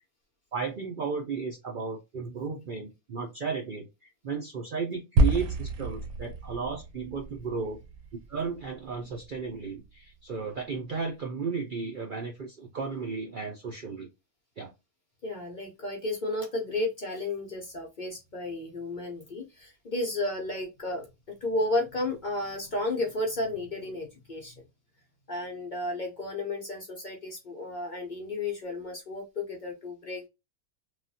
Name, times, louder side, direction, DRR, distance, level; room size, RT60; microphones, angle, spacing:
voice 1, 0.5-7.8 8.3-14.1 14.6-14.7, right 5 dB, 60° right, 2 dB, 0.5 m, -34 dB
sound 1, 5.2-9.5, right 2 dB, 90° right, 1.1 m, -29 dB
voice 2, 15.2-21.1 21.4-24.5 25.3-30.3, left 2 dB, 45° left, 0 dB, 0.7 m, -33 dB
3.2 x 2.3 x 2.7 m, 0.23 s
omnidirectional pair, 1.5 m